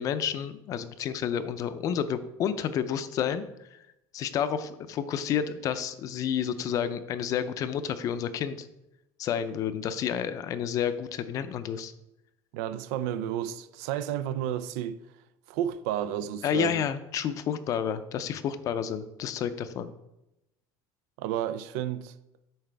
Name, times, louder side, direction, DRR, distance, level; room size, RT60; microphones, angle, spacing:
voice 1, 0.0-3.4 3.7-3.8 4.1-8.7 9.2-11.9 16.4-19.9, left 8 dB, 45° left, 0.5 m, -30 dB
voice 2, 12.5-15.0 15.5-16.8 21.2-22.1, right 11 dB, 85° right, 0.5 m, -31 dB
8.8 x 5.7 x 3.4 m
cardioid pair, 145°, 8 cm